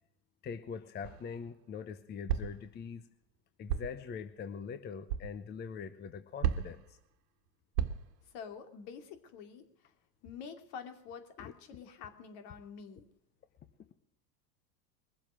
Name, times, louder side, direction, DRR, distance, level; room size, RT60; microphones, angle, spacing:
voice 1, 0.4-3.1 3.6-7.0 11.4-11.5, left 6 dB, 20° left, 11 dB, 0.7 m, -43 dB
sound 1, 1.0-1.4 2.3-2.7 3.7-4.0 5.1-5.3 6.4-6.9 7.8-8.2, right 9 dB, 70° right, 1.5 m, -33 dB
voice 2, 8.3-9.9 10.2-13.1, left 6 dB, 55° left, 7 dB, 2.8 m, -47 dB
21.5 x 7.8 x 6.2 m, 0.77 s
supercardioid pair, 120°, 50 cm